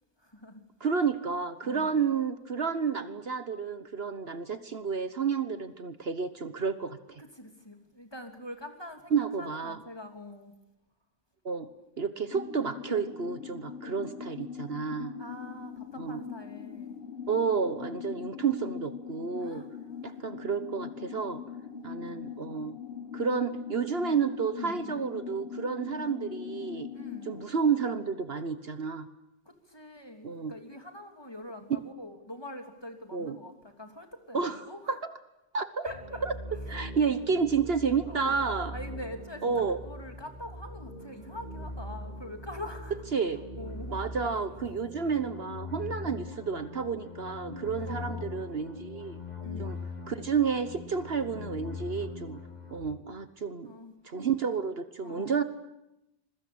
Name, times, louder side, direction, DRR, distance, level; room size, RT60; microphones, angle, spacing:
voice 1, 0.2-0.6 0.9-1.0 1.6-2.0 7.2-10.5 15.2-17.0 19.4-20.2 21.7-22.0 24.6-25.0 26.9-27.4 29.4-35.0 35.8-36.2 38.1-39.5 39.8-42.9 43.6-44.0 46.0-46.2 47.8-48.4 49.4-49.8 53.5-54.0 55.0-55.4, left 1 dB, 20° left, 5 dB, 3.1 m, -44 dB
voice 2, 0.8-7.2 9.1-9.8 11.4-11.7 12.0-15.1 16.0-16.2 17.3-19.6 20.0-21.4 21.8-22.8 23.1-26.9 27.2-29.1 30.2-30.5 31.7-31.8 33.1-33.4 34.3-34.6 34.9-35.1 35.5-35.9 36.2-36.3 36.7-38.7 39.4-39.8 43.1-43.4 43.9-49.2 49.6-49.8 50.1-52.4 52.7-53.7 54.0-55.4, right 6 dB, 55° right, 11 dB, 1.4 m, -30 dB
sound 1, 12.3-27.4, left 7 dB, 55° left, 1.4 m, -41 dB
sound 2, 35.9-52.9, left 2 dB, 35° left, 3.4 m, -41 dB
26.5 x 22.5 x 8.7 m, 0.89 s
omnidirectional pair, 1.2 m